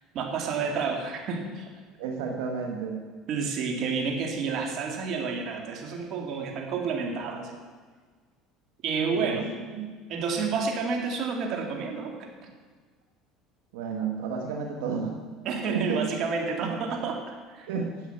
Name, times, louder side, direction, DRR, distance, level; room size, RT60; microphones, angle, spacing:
voice 1, 0.1-1.7 3.3-7.6 8.8-9.5 10.1-12.5 15.5-17.7, right 5 dB, 55° right, 2 dB, 2.2 m, -30 dB
voice 2, 2.0-3.0 9.1-9.4 9.7-9.9 13.7-15.2 15.6-16.1 16.6-16.9 17.7-18.0, right 6 dB, 90° right, 2 dB, 1.4 m, -31 dB
10.5 x 7.6 x 8.1 m, 1.5 s
supercardioid pair, 115°, 0 cm